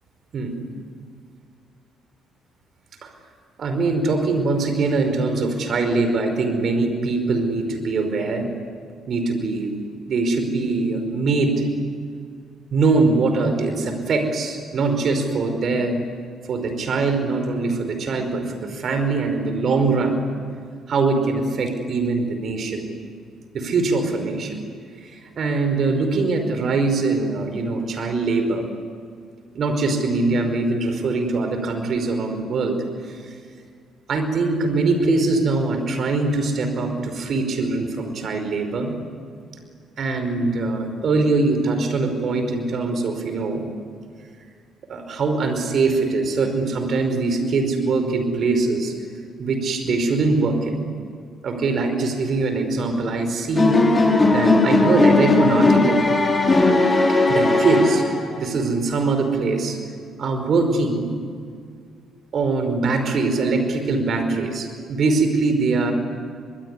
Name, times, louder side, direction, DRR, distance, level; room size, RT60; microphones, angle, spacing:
voice 1, 3.6-8.5 9.1-9.8 10.1-11.6 12.7-16.0 16.5-20.2 20.9-22.9 23.5-24.6 25.0-28.7 29.5-32.8 33.0-33.2 34.1-38.9 40.0-43.7 44.9-48.9 49.4-50.8 51.4-56.1 57.3-58.0 58.4-59.8 60.2-61.1 62.3-65.9, right 3 dB, 50° right, 7 dB, 5.0 m, -22 dB
sound 1, 53.5-58.4, left 2 dB, 25° left, 5.5 m, -17 dB
25.0 x 22.0 x 9.9 m, 2.2 s
hypercardioid pair, 50°, 0 cm